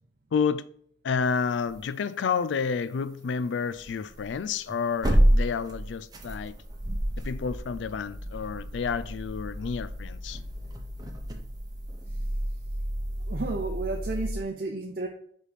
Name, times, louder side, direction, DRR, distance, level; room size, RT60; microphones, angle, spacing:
voice 1, 0.3-0.7 1.0-6.5 7.2-10.4, left 6 dB, 85° left, 0.4 m, -30 dB
sound 1, 1.6-1.8 2.5-2.6 3.7-14.4, equal, 20° right, 0.8 m, -30 dB
voice 2, 13.3-15.1, right 3 dB, 55° right, 0.6 m, -32 dB
5.0 x 4.1 x 4.9 m
head